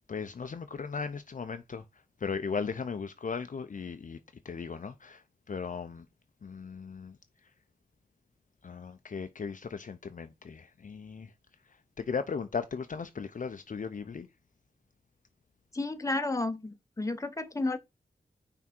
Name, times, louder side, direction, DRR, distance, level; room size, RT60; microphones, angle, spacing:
voice 1, 0.1-1.8 2.2-4.2 4.4-6.1 6.4-7.2 8.6-11.3 12.0-14.3, left 5 dB, 50° left, 0.6 m, -37 dB
voice 2, 15.7-17.8, left 2 dB, 20° left, 0.9 m, -32 dB
5.9 x 3.6 x 4.4 m
wide cardioid pair, 85°, 16 cm